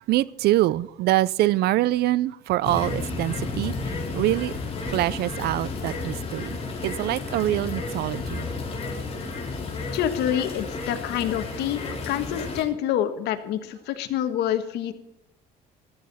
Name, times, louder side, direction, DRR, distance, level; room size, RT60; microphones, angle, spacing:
voice 1, 0.0-4.6 4.9-8.5, right 15 dB, 75° right, 0.5 m, -25 dB
sound 1, 2.6-12.6, left 3 dB, 35° left, 4.1 m, -32 dB
voice 2, 9.9-14.9, left 10 dB, 80° left, 1.5 m, -27 dB
14.0 x 12.5 x 4.2 m
cardioid pair, 110°, 17 cm